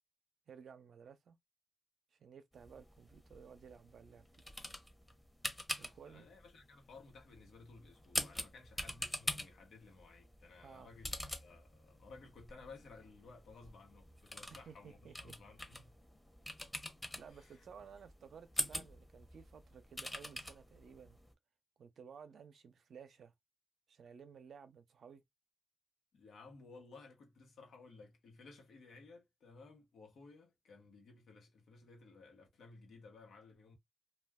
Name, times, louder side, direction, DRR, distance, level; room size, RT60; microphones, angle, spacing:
voice 1, 0.5-1.4 2.1-4.4 5.8-6.2 10.6-10.9 14.5-15.3 17.1-21.2 21.8-23.3 23.9-25.2, right 7 dB, 75° right, 0.5 m, -56 dB
sound 1, 2.5-21.3, left 1 dB, 15° left, 0.8 m, -45 dB
voice 2, 5.8-16.0 17.3-17.7 26.1-33.8, left 3 dB, 80° left, 0.9 m, -57 dB
2.3 x 2.2 x 3.5 m
cardioid pair, 55°, 0 cm